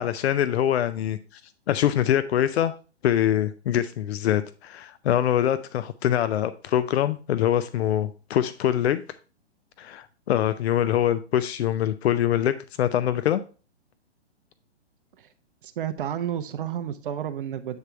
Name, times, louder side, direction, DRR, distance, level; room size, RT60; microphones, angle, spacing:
voice 1, 0.0-1.4 1.7-2.7 3.0-9.0 9.8-13.4, left 11 dB, 65° left, 0.6 m, -24 dB
voice 2, 15.6-17.8, right 10 dB, 50° right, 0.6 m, -31 dB
8.1 x 3.5 x 4.4 m
hypercardioid pair, 130°, 35 cm